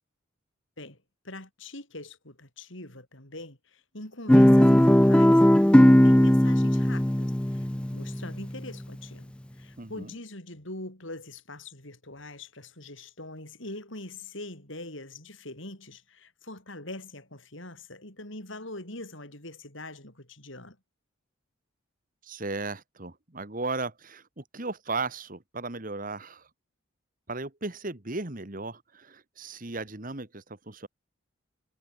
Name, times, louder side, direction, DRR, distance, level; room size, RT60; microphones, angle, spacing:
voice 1, 1.2-20.8, left 2 dB, 65° left, 7.9 m, -43 dB
Guitar, 4.3-8.6, equal, 5° left, 0.4 m, -18 dB
voice 2, 9.8-10.1 22.2-26.5 27.3-30.9, right 3 dB, 40° right, 1.7 m, -36 dB
head